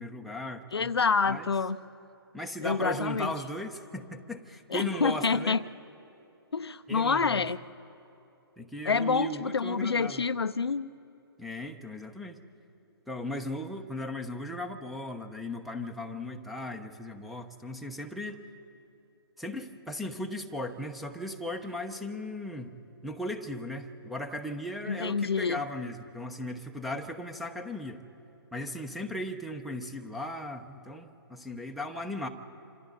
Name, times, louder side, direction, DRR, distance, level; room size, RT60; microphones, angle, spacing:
voice 1, 0.0-0.9 1.2-1.5 2.3-5.6 6.9-7.5 8.6-10.2 11.4-12.4 13.1-18.4 19.4-22.8 23.0-28.0 28.5-32.3, left 1 dB, ahead, 0 dB, 0.9 m, -37 dB
voice 2, 0.7-1.8 2.6-3.3 4.7-5.6 6.5-7.6 8.8-10.9 24.9-25.6, left 5 dB, 80° left, 12 dB, 0.6 m, -27 dB
26.5 x 26.5 x 4.1 m, 2.8 s
figure-of-eight pair, 135°, 13 cm